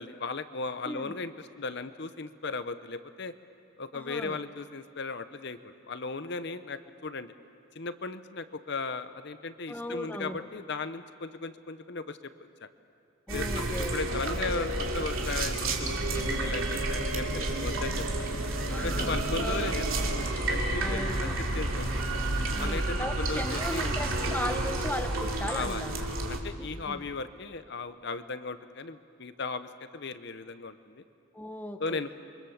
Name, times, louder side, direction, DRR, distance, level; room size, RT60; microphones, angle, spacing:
voice 1, 0.0-3.3 3.8-7.3 7.7-12.3 13.3-15.5 15.8-18.1 18.7-19.9 20.2-22.0 22.6-24.0 25.5-31.0 31.8-32.1, left 4 dB, 55° left, 12 dB, 0.8 m, -37 dB
voice 2, 3.9-4.4 9.7-10.5 13.3-14.0 18.7-19.8 20.8-21.4 22.5-26.0 26.6-27.0 31.3-32.0, left 1 dB, 10° left, 7 dB, 0.9 m, -37 dB
sound 1, 13.3-26.4, right 2 dB, 75° right, 2.7 m, -30 dB
28.5 x 24.0 x 7.2 m, 2.5 s
head